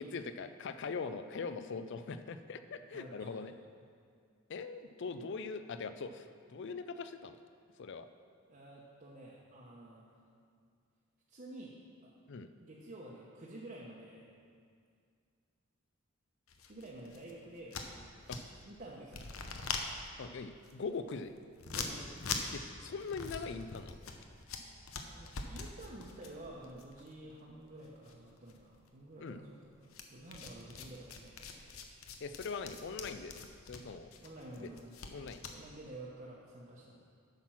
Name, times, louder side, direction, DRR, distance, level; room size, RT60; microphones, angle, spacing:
voice 1, 0.0-3.5 4.5-7.4 7.8-8.1 12.3-12.5 18.3-18.4 20.2-21.3 22.5-24.0 29.2-29.4 32.2-34.1 34.6-34.7 35.1-35.4, left 4 dB, 60° left, 11 dB, 0.4 m, -41 dB
voice 2, 2.8-3.6 8.5-10.2 11.3-11.7 12.0-12.1 12.6-14.3 16.7-18.2 18.6-19.4 21.7-22.4 25.0-31.8 34.2-35.0 35.5-37.0, right 1 dB, 40° right, -5 dB, 0.9 m, -50 dB
sound 1, 16.5-18.7 19.0-27.8 28.1-28.9 29.9-35.6, left 5 dB, 85° left, 0.8 m, -43 dB
8.8 x 5.9 x 5.8 m, 2.2 s
head